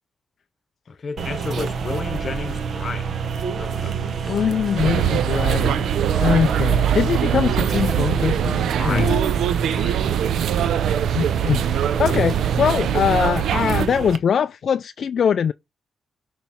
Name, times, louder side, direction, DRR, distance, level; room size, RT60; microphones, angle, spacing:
voice 1, 0.9-4.4 8.8-10.2 10.6-11.2, left 4 dB, 45° left, 0.8 m, -34 dB
sound 1, 1.2-14.2, right 6 dB, 65° right, 0.8 m, -27 dB
voice 2, 4.3-5.9 6.2-9.2 11.1-11.7 12.0-15.5, left 7 dB, 60° left, 0.3 m, -22 dB
sound 2, 4.8-13.9, right 10 dB, 85° right, 0.4 m, -22 dB
6.8 x 3.1 x 5.6 m
cardioid pair, 100°, 0 cm